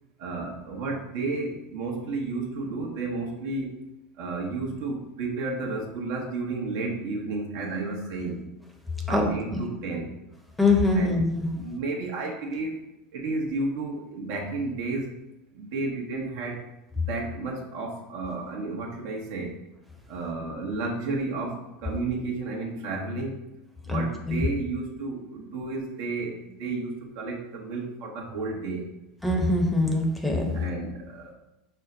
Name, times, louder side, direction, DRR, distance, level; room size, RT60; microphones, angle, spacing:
voice 1, 0.2-3.8 4.2-8.5 9.1-10.1 10.9-11.2 11.5-12.8 13.1-15.2 15.5-16.7 16.9-19.6 20.1-23.4 23.8-28.8 30.5-31.3, right 3 dB, 65° right, 0 dB, 0.9 m, -32 dB
voice 2, 10.6-11.5 23.9-24.0 24.3-24.4 29.2-30.4, left 2 dB, 5° left, 1 dB, 0.8 m, -23 dB
5.4 x 2.1 x 3.8 m, 0.93 s
hypercardioid pair, 90°, 0 cm